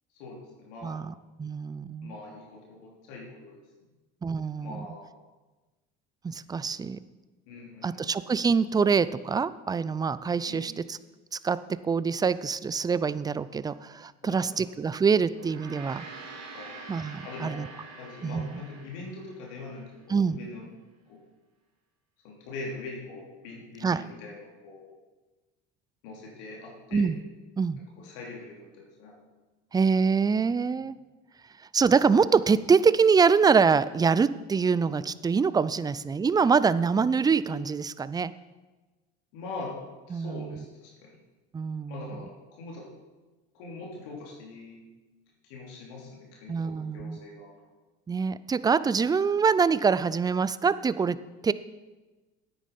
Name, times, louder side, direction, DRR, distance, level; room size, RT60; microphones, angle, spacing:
voice 1, 0.2-1.0 2.0-3.6 4.6-5.1 7.5-8.0 10.5-10.8 14.2-14.5 16.5-16.8 17.2-17.6 18.0-20.6 21.1-21.2 22.2-24.9 26.0-27.1 28.0-29.2 39.3-39.7 40.1-41.2 41.9-42.9 43.5-44.8 45.4-47.7, left 3 dB, 75° left, -2 dB, 3.1 m, -42 dB
voice 2, 0.8-2.1 4.2-4.9 6.2-7.0 7.8-11.0 11.3-11.6 11.8-16.1 16.9-17.7 18.2-18.6 20.1-20.4 23.8-24.0 26.9-27.2 27.6-27.8 29.7-31.0 31.7-38.3 40.1-40.6 41.5-42.2 46.5-47.2 48.1-51.2 51.4-51.5, right 5 dB, 10° right, 16 dB, 0.3 m, -25 dB
Gong, 15.3-19.9, right 3 dB, 55° right, 3.0 m, -45 dB
9.6 x 8.6 x 5.3 m, 1.2 s
hypercardioid pair, 80°, 33 cm